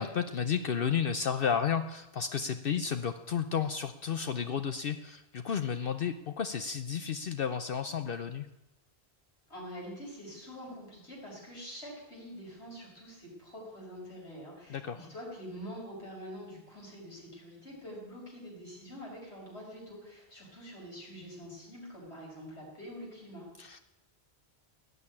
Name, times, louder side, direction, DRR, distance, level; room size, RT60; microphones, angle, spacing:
voice 1, 0.0-8.5 14.7-15.1 23.6-23.8, left 7 dB, 60° left, 8 dB, 0.8 m, -32 dB
voice 2, 9.5-23.5, equal, 85° left, -4 dB, 6.2 m, -45 dB
18.0 x 6.6 x 9.8 m, 0.98 s
omnidirectional pair, 1.1 m